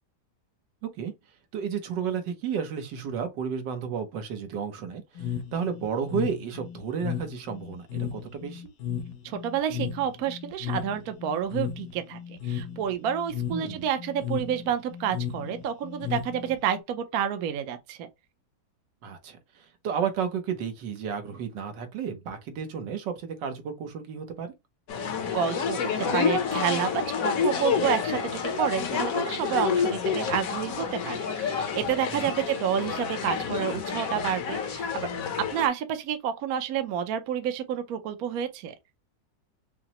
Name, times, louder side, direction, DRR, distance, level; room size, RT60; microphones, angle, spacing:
voice 1, 1.5-8.7 13.5-13.9 19.0-24.5 32.1-32.3, right 7 dB, 80° right, 1.5 m, -32 dB
sound 1, 5.2-16.8, left 9 dB, 75° left, 0.5 m, -34 dB
voice 2, 9.2-18.1 25.1-35.1 35.5-38.7, right 9 dB, 65° right, 1.0 m, -29 dB
sound 2, 24.9-35.7, left 6 dB, 60° left, 1.1 m, -29 dB
5.7 x 2.1 x 2.9 m
omnidirectional pair, 1.9 m